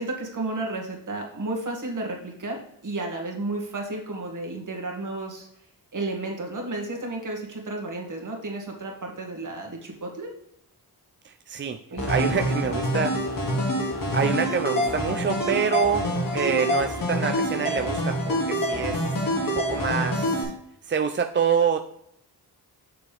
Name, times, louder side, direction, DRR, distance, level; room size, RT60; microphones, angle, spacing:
voice 1, 0.0-5.5 5.9-10.3 11.9-12.7, right 2 dB, 50° right, 0 dB, 2.1 m, -32 dB
voice 2, 11.2-11.8 12.1-13.1 14.1-19.0 19.4-20.5 20.8-21.8, right 6 dB, 30° right, 6 dB, 0.4 m, -26 dB
sound 1, 12.0-20.4, equal, 55° left, 2.2 m, -26 dB
6.9 x 6.3 x 3.4 m, 0.74 s
cardioid pair, 85°, 40 cm